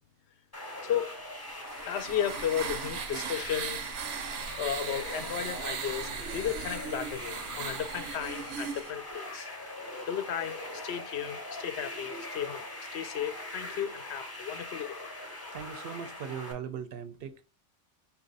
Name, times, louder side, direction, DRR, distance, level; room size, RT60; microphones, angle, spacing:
sound 1, 0.5-16.5, left 1 dB, 20° left, 0.7 m, -42 dB
voice 1, 0.8-1.2 1.8-3.8 4.6-9.5 10.1-15.1, left 9 dB, 70° left, 0.8 m, -34 dB
sound 2, 1.4-8.9, right 7 dB, 90° right, 0.9 m, -38 dB
voice 2, 15.5-17.4, right 8 dB, 65° right, 0.7 m, -39 dB
4.3 x 2.5 x 3.9 m
omnidirectional pair, 1.2 m